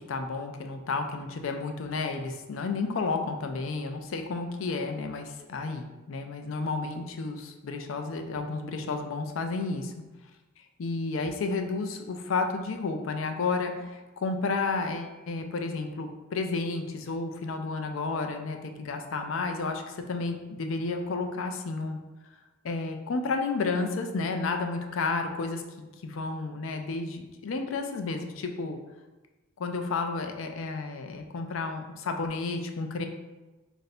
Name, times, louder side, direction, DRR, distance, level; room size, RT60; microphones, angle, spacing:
voice 1, 0.1-9.9 10.8-22.0 22.6-25.6 26.0-28.8 29.6-33.1, left 3 dB, 90° left, 5 dB, 0.4 m, -31 dB
3.2 x 2.6 x 4.2 m, 1.1 s
head